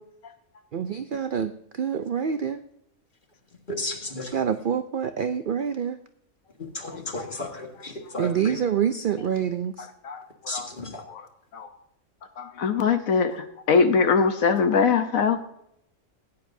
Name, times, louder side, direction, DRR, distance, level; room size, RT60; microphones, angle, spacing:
voice 1, 0.7-1.5 1.8-2.6 4.3-6.0 8.2-9.9, right 8 dB, 70° right, 10 dB, 0.5 m, -26 dB
voice 2, 3.7-4.4 6.6-8.6 10.5-11.0, left 2 dB, 35° left, 3 dB, 1.8 m, -34 dB
voice 3, 9.8-10.7 11.1-11.2 11.5-11.7 12.4-15.4, left 5 dB, 75° left, 8 dB, 1.3 m, -23 dB
16.5 x 9.5 x 2.7 m, 0.77 s
omnidirectional pair, 1.5 m